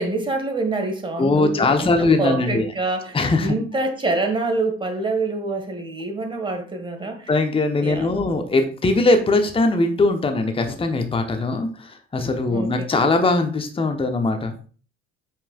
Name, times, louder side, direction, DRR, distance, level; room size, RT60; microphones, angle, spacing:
voice 1, 0.0-7.3 7.8-8.3 12.5-12.9, right 2 dB, 15° right, 1.8 m, -26 dB
voice 2, 1.2-2.7 3.1-3.5 7.3-14.5, left 2 dB, 15° left, 1.1 m, -20 dB
8.4 x 5.9 x 2.4 m
figure-of-eight pair, 55°, 35 cm